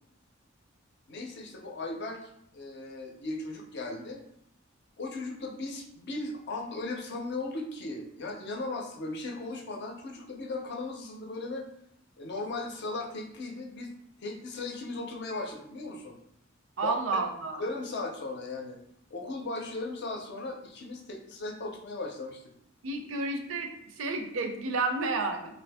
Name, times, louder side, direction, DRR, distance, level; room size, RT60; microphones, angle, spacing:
voice 1, 1.1-4.2 5.0-11.7 12.2-13.9 14.2-16.2 16.8-17.0 17.6-18.8 19.1-22.4, left 2 dB, 55° left, 1 dB, 0.6 m, -37 dB
voice 2, 16.8-17.6 22.8-23.7 24.0-25.6, right 3 dB, 70° right, 5 dB, 0.5 m, -31 dB
2.6 x 2.5 x 3.4 m, 0.72 s
head